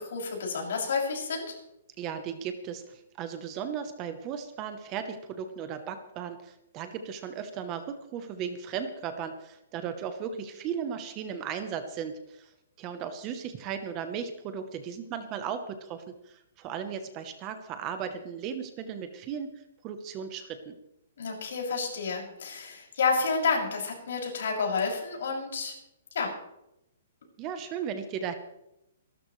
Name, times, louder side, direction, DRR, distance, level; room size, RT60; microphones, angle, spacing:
voice 1, 0.1-1.4 21.2-25.7 26.1-26.3, left 4 dB, 60° left, -1 dB, 6.5 m, -30 dB
voice 2, 2.0-12.5 12.8-19.5 19.8-20.8 27.4-28.4, right 7 dB, 20° right, 9 dB, 0.8 m, -36 dB
26.0 x 13.0 x 3.2 m, 0.87 s
hypercardioid pair, 180°, 0 cm